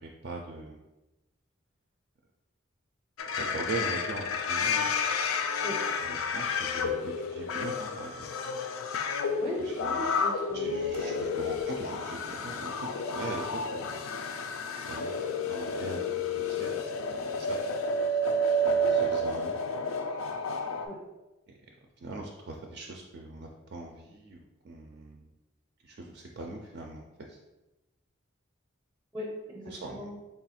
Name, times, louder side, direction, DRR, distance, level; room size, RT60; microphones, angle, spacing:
voice 1, 0.0-0.8 3.4-4.9 6.0-8.3 9.6-10.1 10.5-12.7 13.0-14.0 14.9-15.1 15.5-17.6 18.1-18.2 18.6-19.6 21.5-21.6 22.0-25.3 25.8-27.4 29.7-30.1, right 2 dB, 50° right, 1 dB, 0.3 m, -41 dB
sound 1, 3.2-20.9, left 2 dB, 85° left, 0.4 m, -31 dB
voice 2, 9.4-10.9 20.8-21.0 29.1-30.2, equal, ahead, -2 dB, 0.5 m, -38 dB
3.6 x 2.3 x 4.2 m, 1.0 s
head